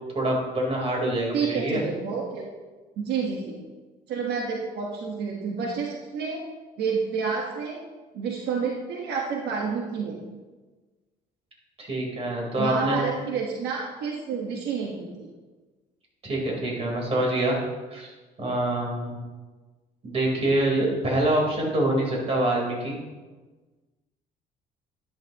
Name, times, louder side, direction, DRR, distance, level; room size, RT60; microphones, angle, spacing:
voice 1, 0.1-1.8 11.8-13.0 16.2-17.6 17.9-18.1 18.4-19.2 20.0-23.0, right 1 dB, 35° right, -2 dB, 4.0 m, -25 dB
voice 2, 1.3-2.4 3.0-3.6 4.1-6.4 6.8-7.8 8.1-10.2 12.6-15.3, right 5 dB, 75° right, -1 dB, 1.5 m, -29 dB
11.5 x 11.5 x 3.0 m, 1.3 s
cardioid pair, 110°, 17 cm